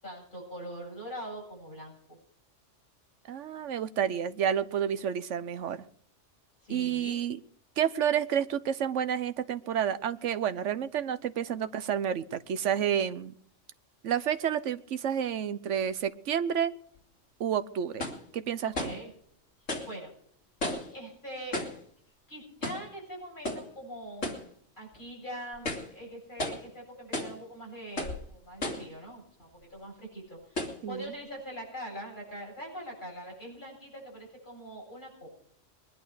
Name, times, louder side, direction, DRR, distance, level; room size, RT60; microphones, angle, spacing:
voice 1, 0.0-2.2 6.6-7.2 18.6-19.1 19.9-20.1 20.9-21.7 22.3-24.4 24.8-35.3, right 1 dB, 40° left, -2 dB, 8.2 m, -43 dB
voice 2, 3.3-5.8 6.7-7.4 7.8-13.3 14.0-16.7 17.4-18.1 18.3-18.7 30.8-31.1, right 9 dB, 75° right, 13 dB, 1.2 m, -30 dB
sound 1, 17.0-17.1 18.0-18.3 18.7-19.1 19.7-19.9 20.6-21.0 21.5-21.8 22.6-22.9 23.4-23.7 24.2-24.5 24.9-25.0 25.5-25.9 26.4-26.7 27.1-27.4 28.0-28.2 28.6-28.9 29.6-29.7 30.6-30.8, left 1 dB, 80° left, 3.0 m, -34 dB
22.0 x 11.0 x 4.9 m, 0.63 s
omnidirectional pair, 1.3 m